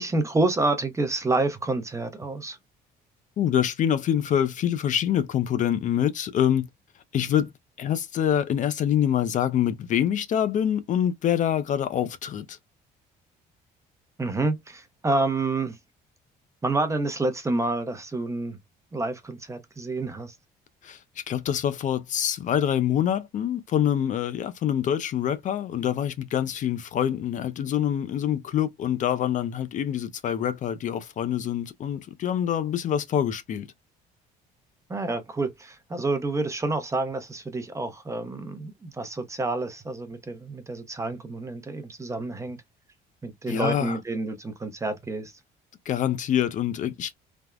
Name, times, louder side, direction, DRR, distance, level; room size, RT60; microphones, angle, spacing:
voice 1, 0.0-2.6 14.2-15.8 16.6-18.6 18.9-20.3 34.9-42.6 43.2-45.3, right 2 dB, 15° right, 0.6 m, -28 dB
voice 2, 3.4-6.7 7.1-7.5 7.8-12.6 20.8-33.7 43.5-44.0 45.9-47.2, left 10 dB, 50° left, 0.4 m, -25 dB
3.3 x 2.0 x 2.3 m
cardioid pair, 110°, 17 cm